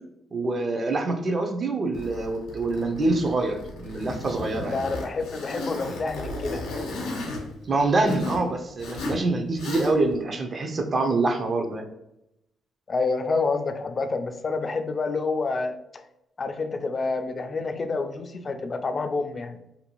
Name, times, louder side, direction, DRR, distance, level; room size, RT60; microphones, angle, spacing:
voice 1, 0.3-4.8 7.7-11.9, right 2 dB, 40° right, 5 dB, 0.4 m, -25 dB
Zipper (clothing), 1.9-8.4 8.8-9.2 9.5-10.2, left 2 dB, 90° left, 0.6 m, -35 dB
voice 2, 4.7-6.6 12.9-15.7 16.4-19.6, left 3 dB, 40° left, 8 dB, 0.3 m, -28 dB
2.6 x 2.3 x 2.9 m, 0.82 s
cardioid pair, 90°, 0 cm